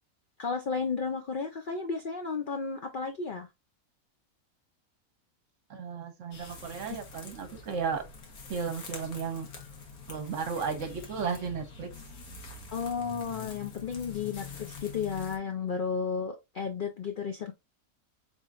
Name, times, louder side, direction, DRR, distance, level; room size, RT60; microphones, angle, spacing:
voice 1, 0.4-3.5 12.7-17.5, left 5 dB, 60° left, 0.5 m, -33 dB
voice 2, 5.7-8.1 8.5-9.5 10.1-11.9, right 6 dB, 60° right, 1.1 m, -34 dB
sound 1, 6.3-15.4, left 4 dB, 80° left, 1.6 m, -45 dB
4.2 x 3.7 x 2.4 m
omnidirectional pair, 1.5 m